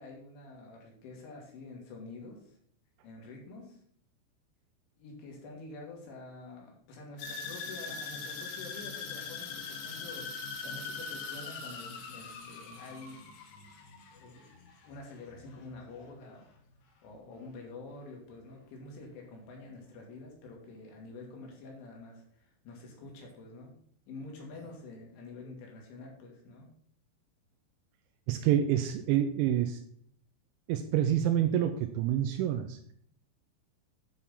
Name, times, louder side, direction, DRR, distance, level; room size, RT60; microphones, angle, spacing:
voice 1, 0.0-2.6 3.0-3.8 5.0-13.3 14.1-14.6 14.8-16.5 17.0-23.8 24.1-26.7, left 3 dB, 75° left, 0 dB, 4.3 m, -47 dB
sound 1, 7.2-15.4 15.7-16.1 16.6-16.7, left 4 dB, 90° left, 4.3 m, -41 dB
voice 2, 28.3-29.8 30.7-32.8, right 10 dB, 85° right, 7 dB, 2.8 m, -27 dB
10.0 x 4.4 x 5.5 m, 0.64 s
omnidirectional pair, 5.8 m